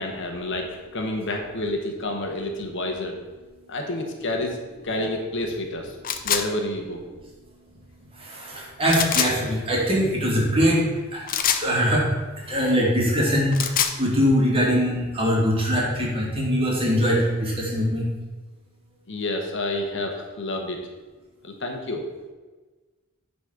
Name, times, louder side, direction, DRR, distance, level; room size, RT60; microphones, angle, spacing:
voice 1, 0.0-3.2 3.7-4.6 4.8-6.0 6.2-7.0 19.1-20.8 21.4-22.0, left 1 dB, 60° left, 2 dB, 1.3 m, -29 dB
sound 1, 6.0-6.4 8.9-9.3 11.3-11.7 13.4-14.0, left 8 dB, 40° left, 0.7 m, -23 dB
voice 2, 8.1-10.8 11.1-12.1 12.4-18.1, equal, 25° right, -4 dB, 2.7 m, -22 dB
10.0 x 4.3 x 6.4 m, 1.3 s
head